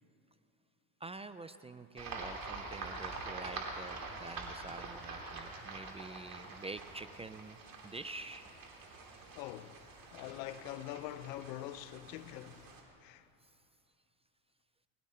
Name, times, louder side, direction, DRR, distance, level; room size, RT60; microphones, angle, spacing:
voice 1, 1.0-7.6 7.8-8.5, right 3 dB, 15° right, 0.4 m, -47 dB
sound 1, 2.0-12.8, right 3 dB, 45° right, 3.3 m, -46 dB
voice 2, 9.3-13.3, left 13 dB, 85° left, 0.8 m, -45 dB
20.5 x 16.0 x 4.3 m
supercardioid pair, 85°, 49 cm